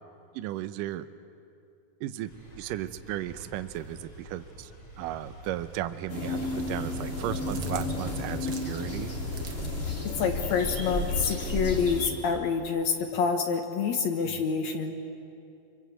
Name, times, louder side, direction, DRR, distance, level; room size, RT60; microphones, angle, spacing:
voice 1, 0.3-1.1 2.0-4.7 5.0-9.1 14.2-14.4, right 13 dB, 75° right, 12 dB, 2.2 m, -35 dB
sound 1, 2.3-9.7, right 1 dB, 40° left, 6.2 m, -47 dB
sound 2, 6.1-12.1, left 2 dB, 20° left, 2.6 m, -32 dB
sound 3, 7.1-10.0, right 5 dB, 55° right, 1.2 m, -45 dB
voice 2, 10.2-14.9, left 5 dB, 60° left, 5 dB, 2.2 m, -27 dB
25.5 x 24.0 x 8.2 m, 2.6 s
omnidirectional pair, 4.2 m